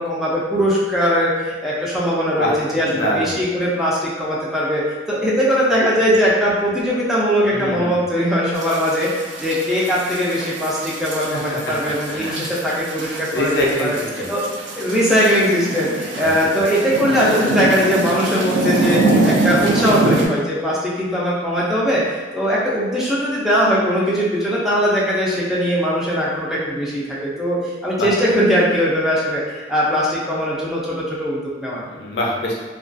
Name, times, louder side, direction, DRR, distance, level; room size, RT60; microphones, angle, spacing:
voice 1, 0.0-4.8 5.1-9.1 9.4-14.0 14.3-14.5 14.8-31.8, equal, ahead, -7 dB, 0.4 m, -20 dB
voice 2, 2.4-3.4 7.5-7.9 11.3-11.6 12.1-12.5 13.3-14.3 16.2-16.3 28.0-28.1 31.9-32.5, left 1 dB, 65° left, -2 dB, 0.5 m, -24 dB
sound 1, 8.6-20.3, right 2 dB, 85° right, 0.4 m, -24 dB
2.3 x 2.2 x 2.5 m, 1.4 s
head